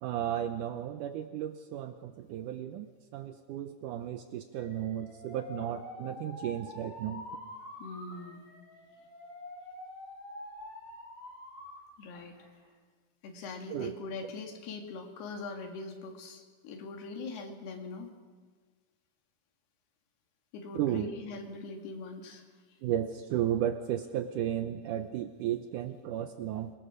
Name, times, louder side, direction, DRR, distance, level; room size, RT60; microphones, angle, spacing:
voice 1, 0.0-2.9 3.1-7.2 13.7-13.9 20.8-21.1 22.8-26.8, right 11 dB, 90° right, 9 dB, 1.8 m, -34 dB
Alarm, 4.5-11.8 12.1-12.7, left 1 dB, 45° left, 5.8 m, -46 dB
voice 2, 7.8-8.5 12.0-12.4 13.2-18.1 20.5-22.4 22.7-22.8, left 3 dB, 75° left, 3 dB, 4.1 m, -42 dB
26.0 x 21.0 x 6.3 m, 1.5 s
omnidirectional pair, 4.6 m